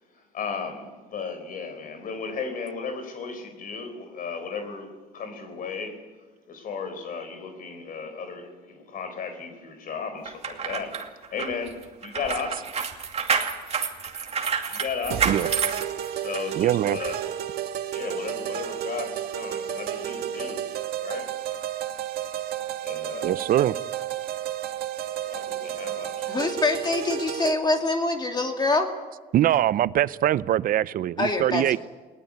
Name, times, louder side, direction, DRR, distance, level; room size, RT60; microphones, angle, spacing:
voice 1, 0.1-6.0 6.5-13.0 14.7-15.7 16.1-17.2 17.9-20.7 21.0-21.3 22.8-23.5 25.2-26.4, left 5 dB, 55° left, 7 dB, 4.2 m, -35 dB
sound 1, 10.3-16.5 17.0-17.2, right 6 dB, 40° right, 2.6 m, -29 dB
sound 2, 15.1-27.5, right 11 dB, 70° right, 1.5 m, -32 dB
voice 2, 16.5-17.0 23.2-23.8 29.3-31.8, right 12 dB, 55° right, 18 dB, 0.6 m, -22 dB
voice 3, 26.3-28.9 31.2-31.8, left 2 dB, 25° left, 3 dB, 2.6 m, -25 dB
20.0 x 18.5 x 9.5 m, 1.3 s
cardioid pair, 110°, 17 cm